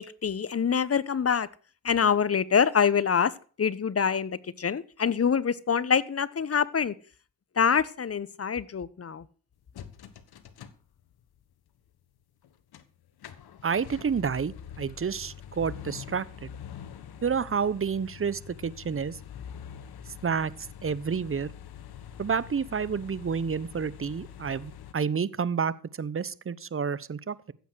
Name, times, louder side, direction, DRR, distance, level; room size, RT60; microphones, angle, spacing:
voice 1, 0.0-1.5 1.8-3.3 3.6-6.9 7.6-9.2, left 7 dB, 35° left, 1.1 m, -25 dB
sound 1, 9.7-11.4 11.9-12.0 12.4-12.8 13.1-24.9, left 9 dB, 65° left, 1.5 m, -45 dB
voice 2, 13.6-16.5 17.2-19.2 20.2-20.5 20.8-21.5 22.2-27.5, right 6 dB, 30° right, 1.0 m, -29 dB
15.0 x 8.2 x 6.4 m
supercardioid pair, 50°, 41 cm